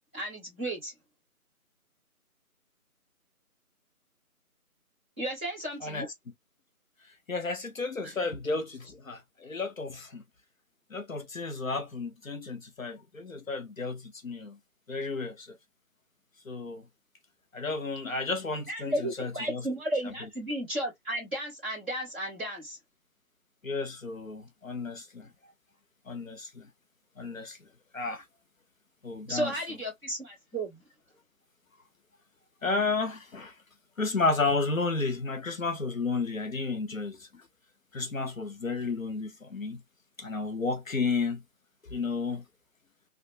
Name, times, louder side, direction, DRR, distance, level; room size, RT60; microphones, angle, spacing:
voice 1, 0.1-0.9 5.2-6.1 8.0-8.1 18.7-22.8 29.3-30.8, right 1 dB, 10° right, 1.5 m, -34 dB
voice 2, 7.3-10.2 10.9-14.5 14.9-15.6 16.5-16.8 17.5-19.6 23.6-25.3 26.1-26.6 27.2-27.6 27.9-28.2 29.0-29.5 32.6-33.5 34.0-37.3 37.9-39.8 40.2-41.4 41.9-42.4, left 3 dB, 60° left, 0.9 m, -32 dB
3.4 x 2.5 x 2.5 m
figure-of-eight pair, 180°, 44 cm